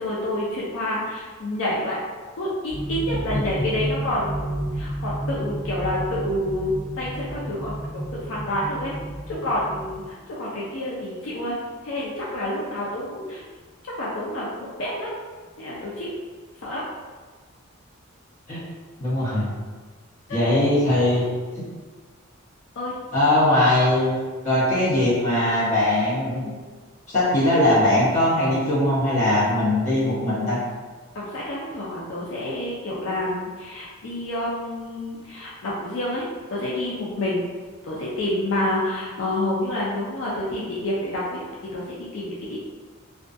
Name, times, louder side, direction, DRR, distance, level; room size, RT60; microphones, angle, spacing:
voice 1, 0.0-2.0 2.4-7.8 8.1-8.9 9.3-11.6 11.8-13.4 13.8-15.1 15.6-16.1 16.6-16.8 22.8-23.0 31.1-36.2 36.5-37.5 37.8-41.4 41.7-42.6, left 1 dB, 75° left, -6 dB, 0.4 m, -28 dB
sound 1, 2.7-10.0, right 1 dB, 55° left, 1.4 m, -31 dB
voice 2, 19.0-19.5 20.3-21.2 23.1-24.2 24.4-26.5 27.1-30.6, left 1 dB, 35° left, -10 dB, 1.0 m, -20 dB
2.3 x 2.2 x 2.5 m, 1.4 s
head